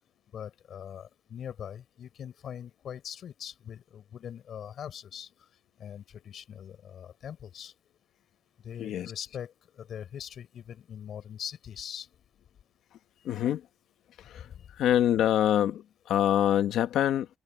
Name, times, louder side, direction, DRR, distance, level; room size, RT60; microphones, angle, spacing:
voice 1, 0.3-5.5 5.8-7.7 8.6-12.1 14.5-14.7, left 9 dB, 55° left, 4.6 m, -42 dB
voice 2, 8.8-9.1 13.2-13.7 14.2-17.3, left 11 dB, 90° left, 1.6 m, -26 dB
cardioid pair, 165°, 0 cm